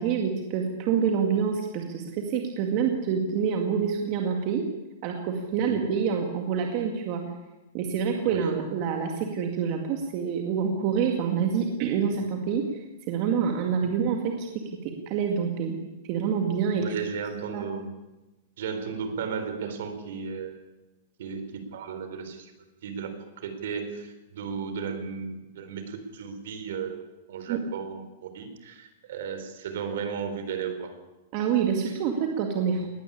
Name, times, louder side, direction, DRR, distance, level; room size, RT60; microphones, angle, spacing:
voice 1, 0.0-4.6 5.0-7.2 7.7-12.6 13.1-14.5 15.1-15.8 16.1-16.8 17.5-17.6 27.5-27.6 31.3-32.9, right 7 dB, 35° right, 3 dB, 2.0 m, -27 dB
voice 2, 8.3-8.6 13.9-14.1 16.8-17.9 18.6-20.6 21.2-22.5 22.8-30.9 31.9-32.3, right 6 dB, 60° right, 9 dB, 3.9 m, -35 dB
19.5 x 14.0 x 10.0 m, 1.0 s
supercardioid pair, 175°, 0 cm